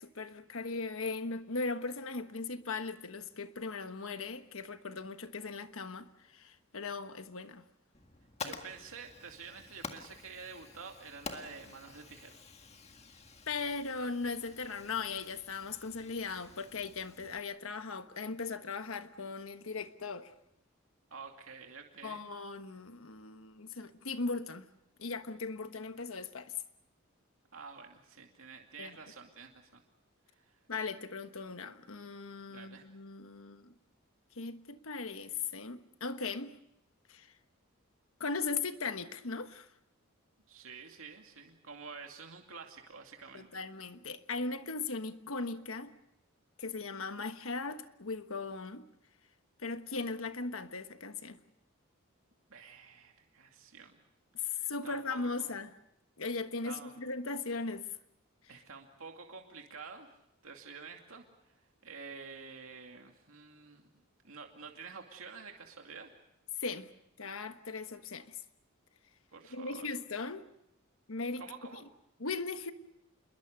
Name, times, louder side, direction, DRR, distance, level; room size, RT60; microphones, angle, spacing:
voice 1, 0.0-7.6 8.4-8.5 13.5-20.3 22.0-24.7 25.0-26.5 28.8-29.0 30.7-33.7 34.4-36.6 37.1-37.3 38.2-39.7 43.3-45.9 46.6-48.9 49.6-51.4 54.3-55.7 56.2-57.9 66.6-66.9 67.2-68.4 69.5-70.5 71.1-71.4 72.2-72.7, left 4 dB, 70° left, 1.3 m, -38 dB
Fire, 7.9-17.4, left 4 dB, 30° left, 1.8 m, -49 dB
voice 2, 8.4-12.4 21.1-22.3 27.5-29.8 30.4-30.5 32.5-32.9 40.5-43.5 52.5-54.0 54.5-55.6 56.6-57.0 58.5-60.1 60.4-61.2 61.8-63.9 64.2-66.1 69.3-69.9 71.4-71.8, right 5 dB, 75° right, 2.5 m, -49 dB
27.5 x 22.0 x 6.7 m
head